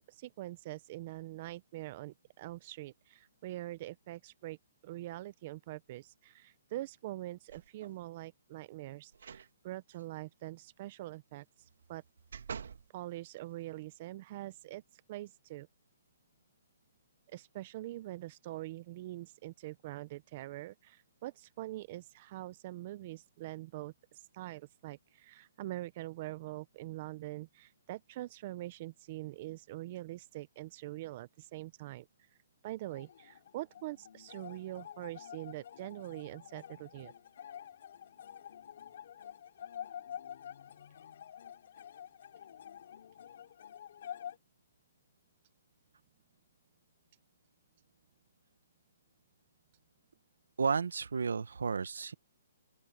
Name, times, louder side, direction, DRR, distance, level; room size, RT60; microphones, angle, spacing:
voice 1, 0.1-4.6 4.8-11.4 11.9-12.0 12.9-14.8 15.1-15.7 17.3-23.9 24.3-32.1 32.6-37.1, right 16 dB, 25° right, 0.4 m, -44 dB
sound 1, 7.5-8.0 9.1-9.5 9.9-10.0 11.6-12.9 13.5-13.6, right 6 dB, 60° right, 2.0 m, -47 dB
sound 2, 32.8-44.4, left 9 dB, 40° left, 3.8 m, -49 dB
voice 2, 50.6-52.1, right 5 dB, 90° right, 0.9 m, -32 dB
open air
hypercardioid pair, 175°, 0 cm